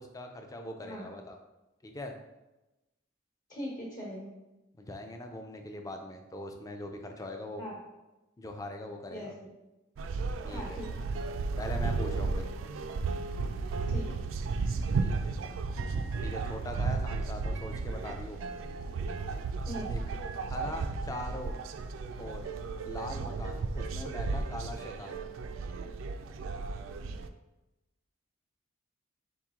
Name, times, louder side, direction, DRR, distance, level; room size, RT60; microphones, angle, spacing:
voice 1, 0.0-1.4 1.8-2.1 4.8-7.7 8.4-9.3 10.4-10.8 11.6-12.5 15.0-15.3 16.2-18.4 19.9-20.2 20.5-21.6 22.2-22.5 22.9-25.2, left 1 dB, 15° left, 4 dB, 0.4 m, -41 dB
voice 2, 3.5-4.3 7.6-7.8 9.1-9.3 10.5-10.9 12.2-12.3 13.9-14.1 16.7-16.9 19.7-19.9, equal, 40° left, -6 dB, 1.1 m, -40 dB
sound 1, 10.0-27.3, right 4 dB, 70° right, 0.3 m, -34 dB
4.3 x 3.0 x 3.6 m, 1.0 s
head